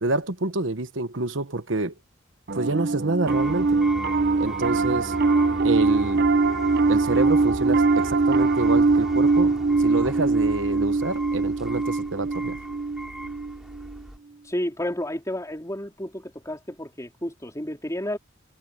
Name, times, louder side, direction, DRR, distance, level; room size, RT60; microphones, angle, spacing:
voice 1, 0.0-1.9 2.5-3.8 4.4-5.2 5.6-6.3 6.9-12.6, right 2 dB, 75° right, 1.2 m, -27 dB
Piano, 2.5-14.0, right 3 dB, 55° right, 0.7 m, -22 dB
sound 1, 3.3-14.2, equal, 5° right, 2.6 m, -38 dB
voice 2, 14.4-18.2, left 1 dB, 15° left, 3.7 m, -31 dB
head